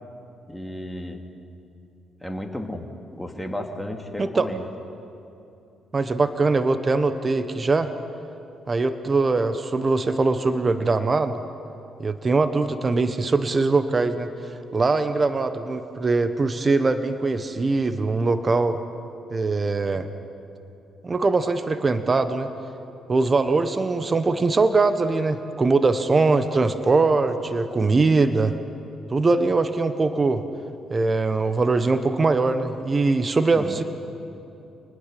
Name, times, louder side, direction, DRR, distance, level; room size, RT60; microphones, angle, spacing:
voice 1, 0.5-1.2 2.2-4.7 33.6-33.8, left 1 dB, 5° left, 3 dB, 2.5 m, -33 dB
voice 2, 5.9-7.9 8.7-11.4 12.0-14.3 14.7-18.8 19.3-20.1 21.0-22.5 23.1-28.5 29.1-30.4 30.9-33.8, right 3 dB, 35° right, 10 dB, 1.2 m, -22 dB
27.0 x 20.0 x 5.4 m, 2.7 s
hypercardioid pair, 50°, 0 cm